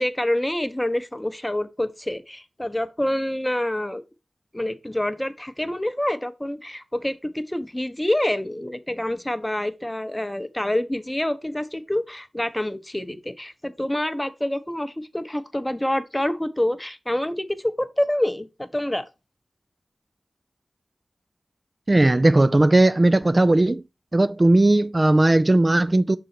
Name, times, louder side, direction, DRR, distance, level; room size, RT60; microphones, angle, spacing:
voice 1, 0.0-4.0 4.5-19.1, left 1 dB, 15° left, 0.7 m, -27 dB
voice 2, 21.9-23.8 24.1-26.2, right 2 dB, 35° right, 0.3 m, -17 dB
6.2 x 3.9 x 4.2 m
cardioid pair, 45°, 0 cm